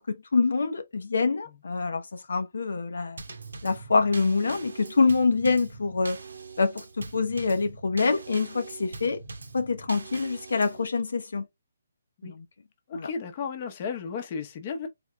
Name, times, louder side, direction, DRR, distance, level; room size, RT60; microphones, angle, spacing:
voice 1, 0.1-3.2 3.6-6.2 6.6-9.2 9.5-11.5 12.2-12.4 12.9-13.1, left 4 dB, 75° left, 0.8 m, -26 dB
Drum kit / Snare drum / Bass drum, 3.2-10.9, right 3 dB, 85° right, 1.1 m, -42 dB
voice 2, 12.9-14.9, left 5 dB, 35° left, 0.9 m, -34 dB
3.7 x 3.5 x 3.1 m
hypercardioid pair, 160°, 0 cm